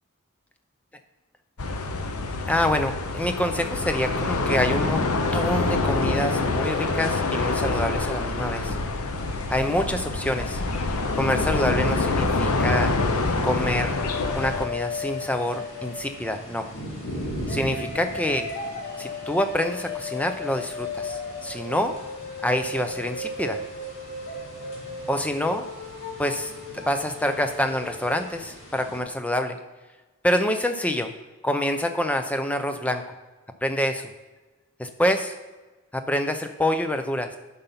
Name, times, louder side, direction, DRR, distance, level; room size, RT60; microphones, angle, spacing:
sound 1, 1.6-14.7, left 3 dB, 90° left, 0.8 m, -26 dB
voice 1, 2.5-5.1 5.3-8.8 9.5-10.6 11.1-12.9 13.4-14.0 14.4-16.7 17.5-18.5 19.0-22.0 22.4-23.6 25.1-25.7 26.2-29.6 30.2-31.1 31.4-33.0 33.6-34.1 34.8-35.3 35.9-37.4, left 1 dB, 5° left, 7 dB, 0.5 m, -26 dB
sound 2, 9.1-29.0, equal, 60° left, 2.1 m, -41 dB
sound 3, 13.9-16.5 17.5-28.3, left 3 dB, 45° left, 1.4 m, -36 dB
9.1 x 5.6 x 5.7 m, 1.2 s
head